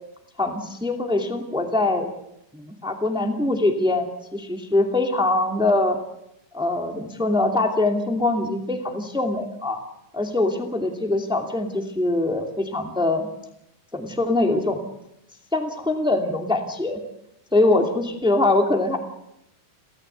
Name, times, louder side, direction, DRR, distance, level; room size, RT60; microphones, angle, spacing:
voice 1, 0.4-2.1 2.5-4.1 4.3-6.0 6.5-9.8 10.1-13.3 13.9-14.8 15.5-17.0 17.5-19.0, left 2 dB, ahead, 4 dB, 1.7 m, -23 dB
29.5 x 13.5 x 8.2 m, 0.82 s
omnidirectional pair, 4.3 m